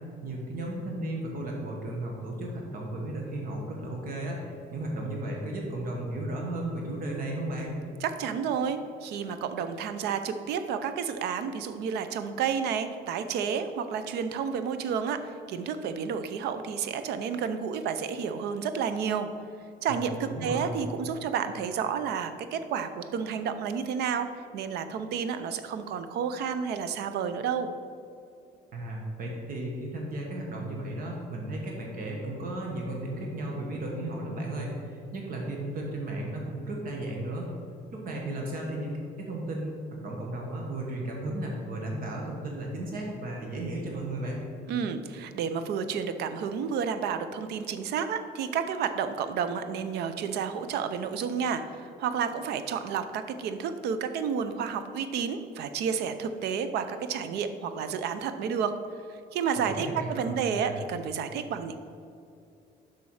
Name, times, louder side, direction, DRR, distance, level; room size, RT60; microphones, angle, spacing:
voice 1, 0.2-7.8 19.9-20.0 20.3-20.7 28.7-37.5 37.9-44.4 59.6-60.8, right 1 dB, 55° right, 0 dB, 1.4 m, -34 dB
voice 2, 8.0-19.3 19.8-24.3 24.5-27.7 44.7-58.7 59.1-61.8, right 7 dB, 75° right, 10 dB, 0.6 m, -31 dB
7.1 x 6.1 x 4.8 m, 2.6 s
cardioid pair, 110°, 17 cm